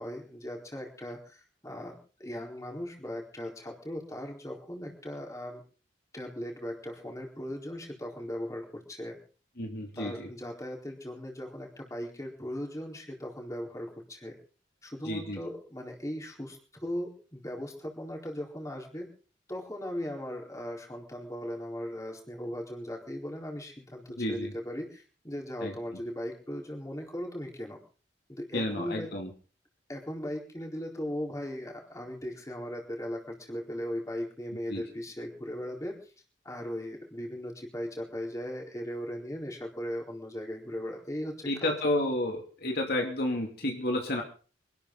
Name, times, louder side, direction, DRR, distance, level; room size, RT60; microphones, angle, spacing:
voice 1, 0.0-5.6 6.1-9.2 10.0-14.4 14.8-19.1 19.5-27.8 28.3-29.1 29.9-36.1 36.4-41.7, equal, 15° left, 0 dB, 4.2 m, -38 dB
voice 2, 9.6-10.3 15.0-15.4 24.2-24.5 25.6-25.7 28.5-29.3 34.7-34.8 41.5-44.2, left 1 dB, 55° left, 2 dB, 2.7 m, -31 dB
25.0 x 12.5 x 3.9 m, 0.39 s
head